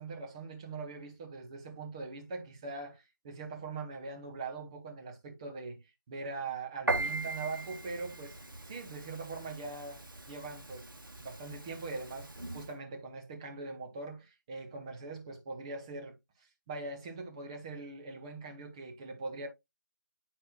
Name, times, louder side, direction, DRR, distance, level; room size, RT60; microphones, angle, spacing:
voice 1, 0.0-8.4 8.7-10.8 11.2-19.5, right 3 dB, 15° right, 0.8 m, -42 dB
Piano, 6.9-12.7, right 2 dB, 85° right, 1.4 m, -39 dB
9.1 x 4.3 x 2.3 m
figure-of-eight pair, 160°, 11 cm